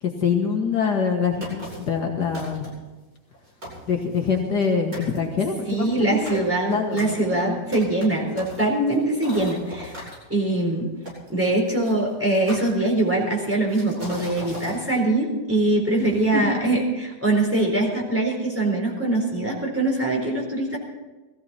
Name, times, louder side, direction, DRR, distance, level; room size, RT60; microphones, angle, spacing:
voice 1, 0.0-2.7 3.9-6.4 6.7-7.7 16.0-16.7, left 5 dB, 65° left, 1 dB, 2.0 m, -25 dB
sound 1, 1.4-1.9 2.3-2.9 3.3-3.4 3.6-4.7 4.9-5.2 5.7-10.2 11.0-11.9 12.5-13.2 13.7-14.8, equal, 50° right, 7.8 m, -38 dB
voice 2, 5.7-9.9 10.3-10.9 11.3-20.8, right 2 dB, 5° right, -2 dB, 4.1 m, -23 dB
19.5 x 15.0 x 4.4 m, 1.2 s
omnidirectional pair, 2.0 m